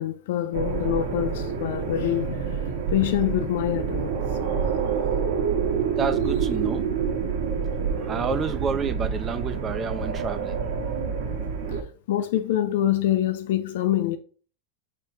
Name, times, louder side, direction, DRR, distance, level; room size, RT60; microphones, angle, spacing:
voice 1, 0.0-2.6 2.9-4.1 12.1-14.2, left 12 dB, 75° left, 0.4 m, -25 dB
sound 1, 0.5-11.8, right 6 dB, 70° right, 1.0 m, -27 dB
voice 2, 6.0-6.8 8.0-10.6 10.8-10.9, right 6 dB, 25° right, 0.5 m, -29 dB
4.4 x 3.4 x 2.9 m
supercardioid pair, 145°, 0 cm